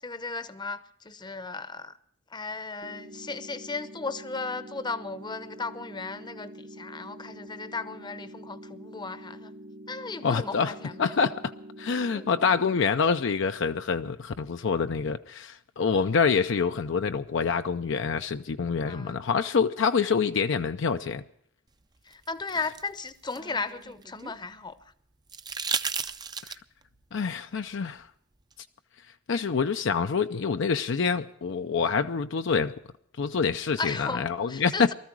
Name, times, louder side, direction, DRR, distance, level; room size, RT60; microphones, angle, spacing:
voice 1, 0.0-2.0 2.3-9.5 9.9-11.2 12.1-12.3 18.9-19.2 22.0-24.8 33.8-34.9, left 4 dB, 20° left, 0.8 m, -36 dB
sound 1, 2.8-12.8, equal, 40° right, 0.9 m, -46 dB
voice 2, 10.2-10.7 11.0-11.5 11.8-21.2 27.1-28.1 29.3-32.7 33.2-34.9, left 5 dB, 65° left, 0.5 m, -26 dB
sound 2, 22.1-24.4 25.3-26.8 28.5-28.6, right 5 dB, 20° right, 0.5 m, -34 dB
19.0 x 13.5 x 4.6 m
head